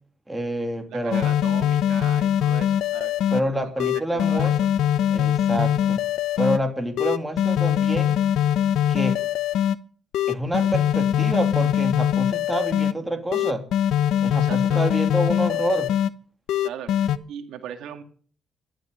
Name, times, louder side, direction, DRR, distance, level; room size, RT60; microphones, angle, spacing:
voice 1, 0.3-1.3 3.3-4.5 5.1-6.0 6.4-8.2 8.9-9.2 10.3-13.7 14.2-15.9, right 1 dB, 10° right, 5 dB, 2.8 m, -27 dB
voice 2, 0.9-4.7 14.3-14.8 16.6-18.0, right 9 dB, 85° right, 7 dB, 2.1 m, -39 dB
sound 1, 1.1-3.4 3.8-6.6 7.0-9.7 10.1-12.9 13.3-16.1 16.5-17.2, left 10 dB, 85° left, 0.9 m, -22 dB
12.5 x 12.0 x 6.6 m, 0.43 s
cardioid pair, 120°, 0 cm